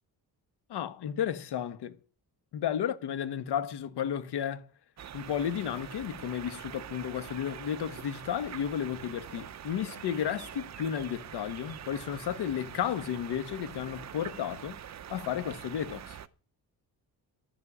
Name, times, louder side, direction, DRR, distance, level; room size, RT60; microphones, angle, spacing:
voice 1, 0.7-1.9 2.5-4.6 5.1-14.8 15.1-16.2, left 9 dB, 85° left, 1.5 m, -33 dB
sound 1, 5.0-16.3, right 9 dB, 45° right, 0.8 m, -44 dB
13.0 x 7.6 x 10.0 m
wide cardioid pair, 155°, 38 cm